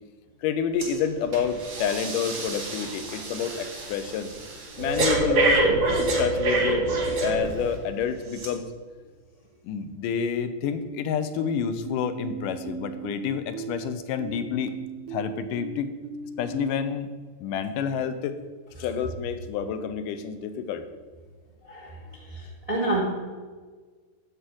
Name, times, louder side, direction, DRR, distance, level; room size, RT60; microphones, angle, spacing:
voice 1, 0.4-4.3 4.8-5.6 6.2-6.8 7.2-8.7 9.6-14.7 15.1-15.9 16.4-17.1 17.4-18.4 18.8-20.9, left 7 dB, 85° left, 10 dB, 2.3 m, -29 dB
Breathing, 0.8-1.0 1.3-7.8 8.3-8.5, right 2 dB, 50° right, 2.7 m, -26 dB
sound 1, 11.9-16.9, right 5 dB, 80° right, 1.9 m, -38 dB
voice 2, 21.6-22.0 22.3-23.0, right 2 dB, 20° right, -4 dB, 1.0 m, -28 dB
10.5 x 4.9 x 7.7 m, 1.5 s
omnidirectional pair, 3.7 m